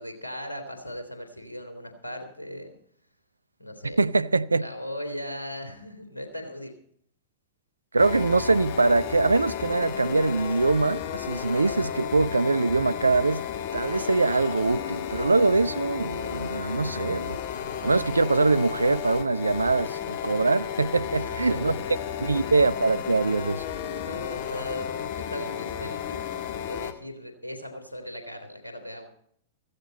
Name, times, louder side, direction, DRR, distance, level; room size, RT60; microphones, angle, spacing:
voice 1, 0.0-2.8 3.6-4.0 4.5-6.7 21.1-21.9 22.3-22.5 23.9-26.2 26.6-29.1, equal, 85° left, 3.3 m, -38 dB
voice 2, 3.8-4.6 7.9-13.4 13.7-17.4 17.8-21.8 22.2-23.6, right 3 dB, 80° right, 0.6 m, -23 dB
sound 1, 8.0-26.9, left 9 dB, 50° left, 1.6 m, -33 dB
16.0 x 15.5 x 4.3 m
figure-of-eight pair, 95°, 0 cm